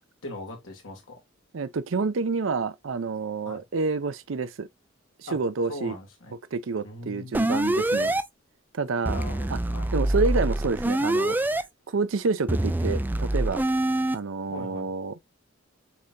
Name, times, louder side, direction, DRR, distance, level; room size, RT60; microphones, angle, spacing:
voice 1, 0.2-1.2 3.4-3.6 5.3-5.4 5.7-6.4 6.8-7.5 9.1-9.9 14.5-14.9, left 2 dB, 85° left, 2.1 m, -40 dB
voice 2, 1.5-4.7 5.2-6.0 6.5-8.1 8.7-9.2 9.5-9.6 9.9-11.4 11.9-13.7 14.1-15.2, right 4 dB, 70° right, 0.5 m, -28 dB
sound 1, 7.3-8.2 9.1-11.6 12.5-14.2, right 1 dB, 10° right, 0.4 m, -25 dB
6.7 x 2.9 x 2.5 m
head